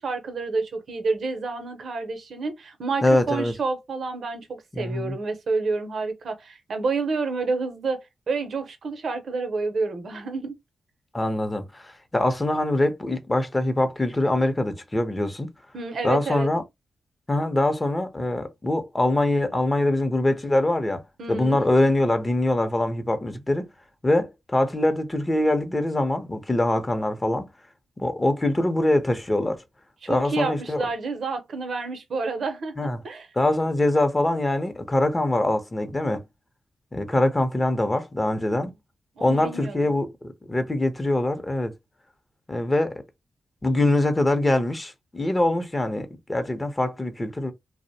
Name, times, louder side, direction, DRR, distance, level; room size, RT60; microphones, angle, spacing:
voice 1, 0.0-8.0 8.3-10.6 15.7-16.5 21.2-21.6 30.0-33.3 38.3-38.5 39.2-39.9, right 4 dB, 65° right, 0.6 m, -29 dB
voice 2, 3.0-3.5 4.7-5.2 11.1-15.5 16.0-16.6 17.3-21.0 21.3-23.7 24.0-27.5 28.0-29.6 30.1-30.9 32.8-33.0 33.4-36.2 36.9-38.7 39.2-41.7 42.5-43.0 43.6-47.5, left 1 dB, 25° left, 0.6 m, -23 dB
2.5 x 2.0 x 2.6 m
cardioid pair, 55°, 0 cm